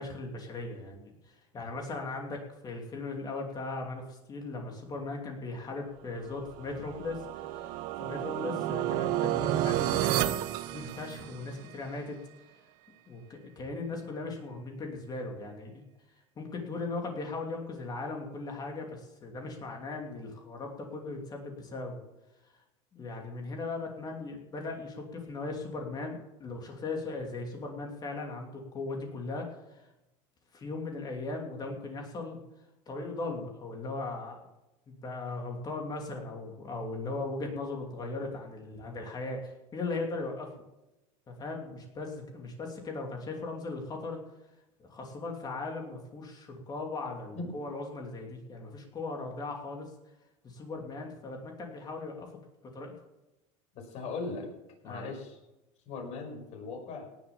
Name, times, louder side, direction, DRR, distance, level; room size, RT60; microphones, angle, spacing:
voice 1, 0.0-12.2 13.1-15.8 16.4-22.0 22.9-29.9 30.5-32.4 32.9-34.4 35.0-40.5 41.4-44.2 44.8-49.9 50.4-52.3 52.6-52.9 54.8-55.1, left 3 dB, 25° left, 1 dB, 2.8 m, -38 dB
sound 1, 6.4-11.6, right 13 dB, 55° right, 0.8 m, -31 dB
voice 2, 53.7-54.5 54.8-55.4 55.9-57.1, left 3 dB, 45° left, 1 dB, 5.6 m, -38 dB
18.0 x 7.3 x 7.3 m, 0.95 s
supercardioid pair, 135°, 16 cm